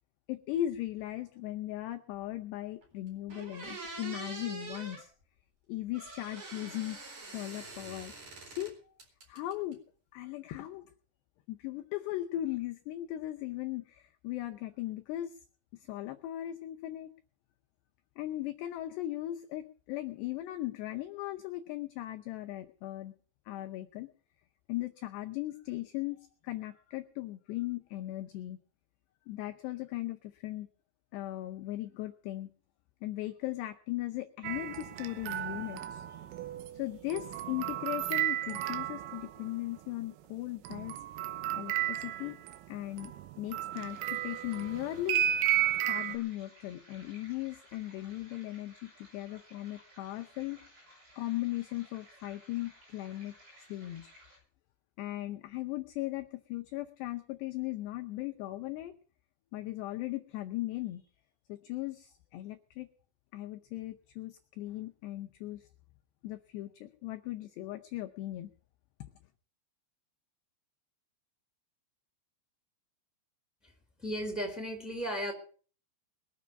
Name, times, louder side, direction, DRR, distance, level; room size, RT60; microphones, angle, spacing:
voice 1, 0.3-5.1 5.7-7.0 7.3-8.1 8.5-8.8 9.3-9.8 10.1-10.9 11.5-15.4 15.7-17.1 18.2-23.1 23.5-24.1 24.7-28.6 29.3-30.7 31.1-32.5 33.0-36.3 36.7-41.0 41.5-42.4 42.7-43.1 43.4-45.2 45.9-50.6 51.2-54.1 55.0-59.0 59.5-61.0 61.5-62.9 63.3-65.7 66.2-68.5 69.0-69.1, left 15 dB, 85° left, 5 dB, 2.4 m, -38 dB
sound 1, 2.8-2.9 3.3-5.0 5.9-8.7 9.0-9.7, right 3 dB, 35° right, 4.8 m, -45 dB
sound 2, 34.4-39.5 40.7-46.2, right 12 dB, 85° right, 3.6 m, -33 dB
sound 3, 43.7-54.4, equal, 70° right, 10.0 m, -58 dB
voice 2, 74.0-75.3, equal, ahead, 1 dB, 3.3 m, -35 dB
21.5 x 7.3 x 7.0 m, 0.42 s
omnidirectional pair, 5.9 m